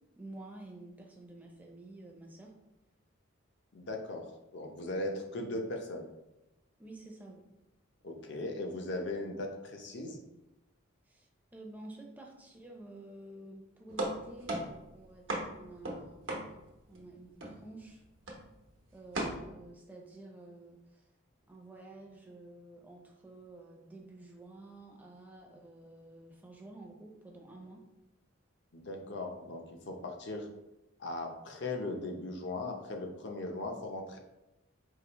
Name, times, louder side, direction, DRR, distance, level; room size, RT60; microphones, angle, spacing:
voice 1, 0.2-2.5 6.8-7.5 11.1-16.2 16.9-18.0 18.9-21.1 21.5-27.8, right 2 dB, 10° right, 0 dB, 0.6 m, -50 dB
voice 2, 3.7-4.3 4.5-6.1 8.0-10.2 28.7-30.5 31.0-34.2, left 2 dB, 60° left, 2 dB, 0.7 m, -38 dB
sound 1, 13.9-17.1 17.4-17.9 18.3-18.6 19.1-19.4, right 1 dB, 70° right, 0.9 m, -37 dB
4.8 x 2.9 x 3.0 m, 0.96 s
head